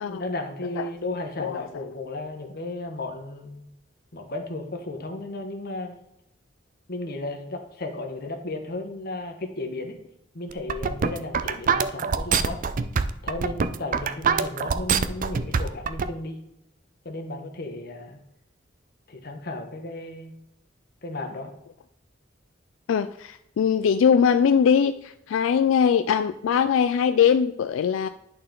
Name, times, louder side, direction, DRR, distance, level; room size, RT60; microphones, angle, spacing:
voice 1, 0.0-3.7 4.1-5.9 6.9-10.0 10.3-12.6 13.2-16.4 17.0-18.2 19.1-20.3 21.0-21.5, left 2 dB, 55° left, 4 dB, 1.2 m, -34 dB
sound 1, 10.5-16.1, right 5 dB, 45° right, 0.4 m, -24 dB
voice 2, 22.9-28.1, left 7 dB, 90° left, 10 dB, 0.3 m, -21 dB
10.5 x 4.3 x 3.8 m, 0.83 s
head